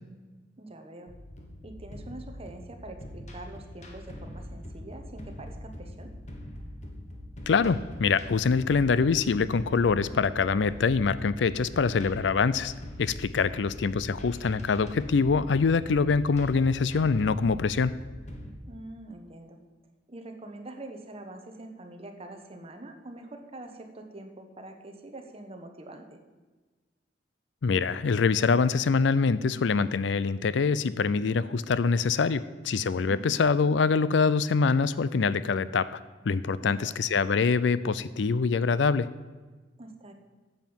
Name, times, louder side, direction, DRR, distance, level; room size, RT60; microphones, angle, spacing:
voice 1, 0.6-1.1 1.6-6.1 13.3-13.6 18.7-19.6 20.1-26.2 33.0-33.4 36.6-37.0 39.8-40.1, right 2 dB, 35° right, 5 dB, 1.2 m, -44 dB
sound 1, 1.1-18.5, left 1 dB, 40° left, 1.5 m, -42 dB
voice 2, 7.5-12.7 13.0-17.9 27.6-36.0 36.2-39.1, left 5 dB, 80° left, 16 dB, 0.5 m, -24 dB
9.2 x 7.9 x 7.1 m, 1.3 s
head